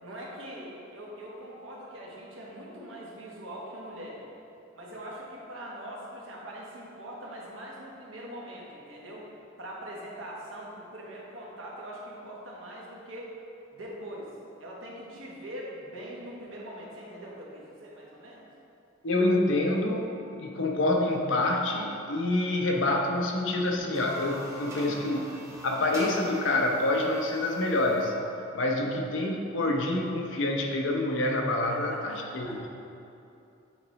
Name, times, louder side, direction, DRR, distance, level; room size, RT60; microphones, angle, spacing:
voice 1, 0.0-4.2 4.7-9.3 9.6-13.3 13.7-14.3 14.6-18.5 24.9-25.1 28.8-29.0 31.7-32.7, right 1 dB, 80° right, -4 dB, 1.2 m, -42 dB
voice 2, 19.0-25.3 25.6-28.1 28.5-32.6, left 2 dB, 65° left, 1 dB, 0.7 m, -27 dB
sound 1, 23.8-28.2, equal, 15° right, 0.8 m, -43 dB
8.1 x 4.0 x 3.1 m, 2.7 s
head